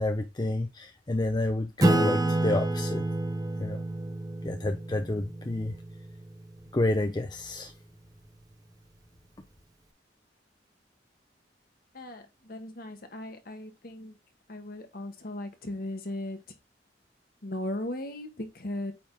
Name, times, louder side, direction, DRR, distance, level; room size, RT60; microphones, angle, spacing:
voice 1, 0.0-3.0 3.6-3.8 4.4-5.7 6.7-7.7, left 2 dB, 25° left, 0.5 m, -29 dB
Acoustic guitar / Strum, 1.8-6.8, right 2 dB, 20° right, 0.7 m, -29 dB
voice 2, 11.9-14.2 14.5-16.4 17.4-18.9, left 1 dB, 55° left, 1.3 m, -37 dB
8.6 x 3.4 x 3.8 m
head